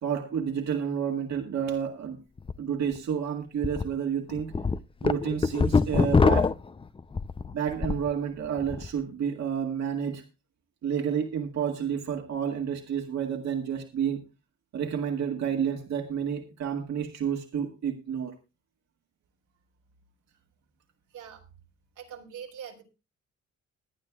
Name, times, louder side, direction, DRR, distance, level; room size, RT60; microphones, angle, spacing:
voice 1, 0.0-2.2 2.6-4.6 5.0-6.5 7.5-10.2 10.8-14.2 14.7-18.3, right 8 dB, 65° right, 2 dB, 2.0 m, -30 dB
sound 1, 2.4-2.5 3.0-3.1 3.6-3.8 4.3-8.1 8.5-8.9, left 4 dB, 20° left, 0.5 m, -24 dB
voice 2, 21.1-21.4 22.0-22.8, right 8 dB, 80° right, 1 dB, 3.0 m, -43 dB
22.5 x 9.6 x 2.3 m, 0.28 s
cardioid pair, 90°, 30 cm